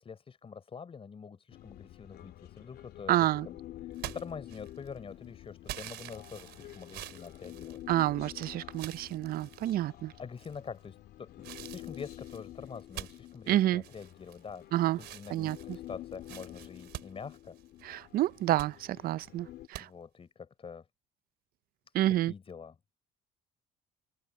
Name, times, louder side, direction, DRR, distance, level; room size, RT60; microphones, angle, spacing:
voice 1, 0.0-3.6 3.9-7.8 10.2-14.6 14.9-17.6 19.8-20.9 22.1-22.8, left 6 dB, 35° left, 4.0 m, -45 dB
Human voice, 1.5-19.7, left 14 dB, 70° left, 2.7 m, -49 dB
voice 2, 3.1-3.5 7.9-10.1 13.5-13.8 14.7-15.0 15.3-15.8 17.8-19.9 21.9-22.3, right 14 dB, 60° right, 0.5 m, -29 dB
sound 1, 3.9-5.0 5.7-8.3 8.7-9.7 10.4-10.8 11.4-14.6 14.9-17.9 18.3-18.7 19.7-19.8, right 15 dB, 80° right, 3.6 m, -46 dB
cardioid pair, 110°, 17 cm